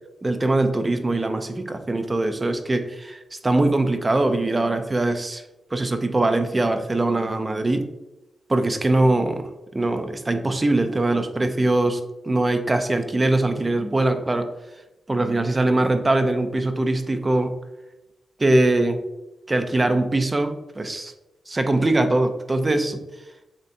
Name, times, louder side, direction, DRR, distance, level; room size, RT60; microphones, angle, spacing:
voice 1, 0.2-5.4 5.7-7.9 8.5-12.0 12.3-14.5 15.1-17.5 18.4-19.0 19.5-21.1 21.5-23.0, right 2 dB, 20° right, 7 dB, 0.4 m, -22 dB
7.0 x 2.7 x 2.6 m, 0.96 s
wide cardioid pair, 140°, 0 cm